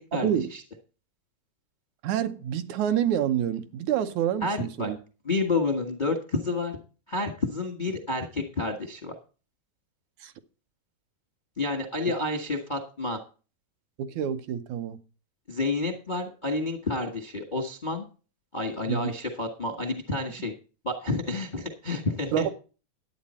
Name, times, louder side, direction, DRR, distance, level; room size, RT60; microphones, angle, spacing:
voice 1, 0.1-0.6 4.4-4.9 5.2-6.8 7.1-9.1 11.6-13.2 15.5-18.1 18.5-20.5 20.8-22.5, left 3 dB, 50° left, 0.5 m, -29 dB
voice 2, 2.0-5.0 10.2-10.3 14.0-15.0 18.9-19.1 22.3-22.5, right 10 dB, 80° right, 2.2 m, -27 dB
11.5 x 8.7 x 4.2 m
omnidirectional pair, 3.3 m